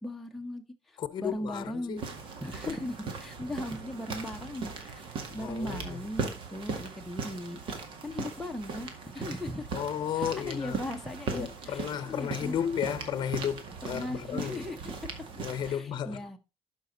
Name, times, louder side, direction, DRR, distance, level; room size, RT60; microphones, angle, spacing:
voice 1, 0.0-2.0 2.4-7.6 8.0-9.8 10.2-12.6 13.9-14.8 15.6-16.4, left 1 dB, ahead, 0.9 m, -38 dB
voice 2, 1.0-2.0 5.4-6.0 9.7-10.8 11.3-14.7 15.4-16.2, left 9 dB, 45° left, 0.8 m, -33 dB
sound 1, 2.0-15.8, right 4 dB, 60° right, 1.9 m, -39 dB
12.0 x 5.3 x 3.9 m
cardioid pair, 135°, 10 cm